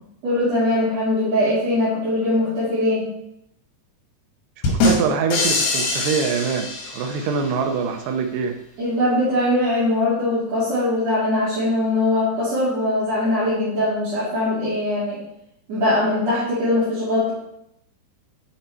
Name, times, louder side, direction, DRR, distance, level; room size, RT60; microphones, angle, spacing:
voice 1, 0.2-3.1 8.8-15.2 15.7-17.3, left 1 dB, 45° right, -12 dB, 3.3 m, -21 dB
sound 1, 4.6-7.5, left 2 dB, 75° left, 3.3 m, -23 dB
voice 2, 4.7-8.6, right 5 dB, 85° right, 5 dB, 2.9 m, -24 dB
7.4 x 5.3 x 4.4 m, 0.79 s
omnidirectional pair, 4.6 m